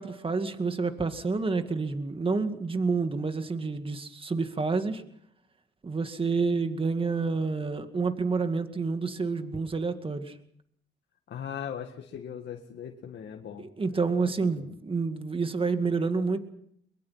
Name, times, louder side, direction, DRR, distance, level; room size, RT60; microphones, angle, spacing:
voice 1, 0.0-5.0 5.8-10.4 13.6-16.4, right 4 dB, 25° right, 8 dB, 2.1 m, -29 dB
voice 2, 11.3-13.7 14.5-14.7, left 8 dB, 60° left, 2 dB, 2.0 m, -39 dB
23.0 x 22.5 x 5.8 m, 0.69 s
cardioid pair, 90°, 20 cm